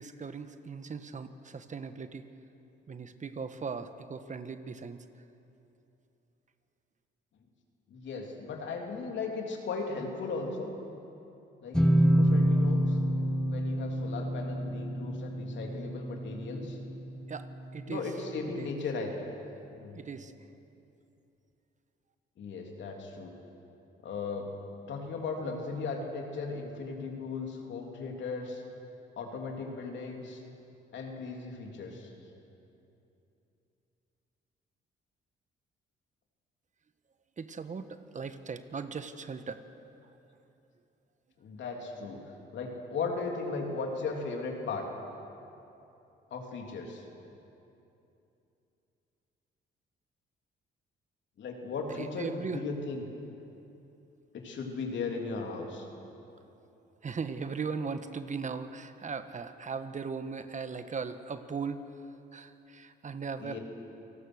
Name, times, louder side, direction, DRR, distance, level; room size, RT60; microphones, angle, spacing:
voice 1, 0.0-2.2 2.9-5.0 17.3-17.5 17.7-18.0 18.6-18.7 19.9-20.3 37.4-39.6 51.9-52.6 57.0-61.9 62.3-63.6, right 5 dB, 40° right, 10 dB, 1.3 m, -38 dB
voice 2, 7.9-10.7 11.6-13.0 13.5-16.8 17.9-19.3 19.7-20.0 22.4-23.3 24.0-24.5 24.9-28.6 29.2-30.4 30.9-32.1 41.4-42.2 42.5-44.9 46.3-47.1 51.4-53.0 54.3-55.9 63.4-63.6, left 4 dB, 70° left, 1 dB, 3.4 m, -37 dB
sound 1, 11.7-17.3, equal, 5° left, 2.2 m, -27 dB
28.0 x 18.5 x 6.5 m, 2.9 s
cardioid pair, 90°, 20 cm